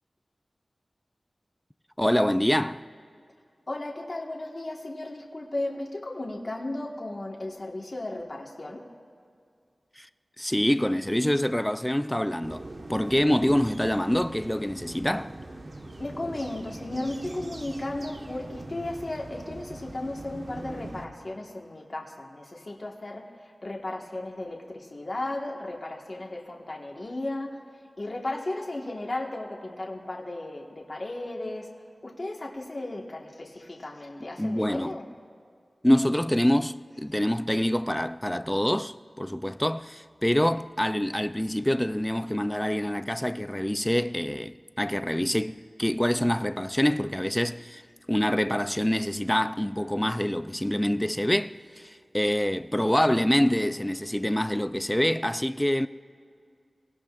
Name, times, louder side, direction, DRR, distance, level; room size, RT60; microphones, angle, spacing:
voice 1, 2.0-2.8 10.0-10.1 10.4-15.3 34.2-34.9 35.8-47.8 48.1-55.9, equal, 10° left, 0.4 m, -26 dB
voice 2, 3.7-8.8 16.0-23.2 23.6-27.6 28.0-31.7 32.0-35.1, left 2 dB, 45° left, 1.5 m, -35 dB
sound 1, 12.4-21.1, right 2 dB, 50° right, 1.2 m, -41 dB
24.5 x 17.5 x 2.5 m
wide cardioid pair, 80°, 0 cm